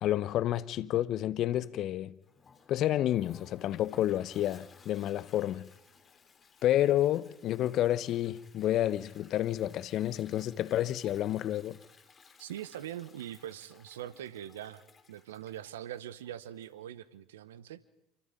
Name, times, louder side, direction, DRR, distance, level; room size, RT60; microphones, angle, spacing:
voice 1, 0.0-2.1 2.7-5.7 6.6-11.8, left 13 dB, 50° left, 1.0 m, -30 dB
Toilet flush, 2.2-16.8, left 5 dB, 30° left, 3.2 m, -60 dB
voice 2, 12.4-14.8 15.1-17.8, right 11 dB, 80° right, 1.2 m, -42 dB
27.0 x 25.0 x 5.3 m
hypercardioid pair, 70°, 0 cm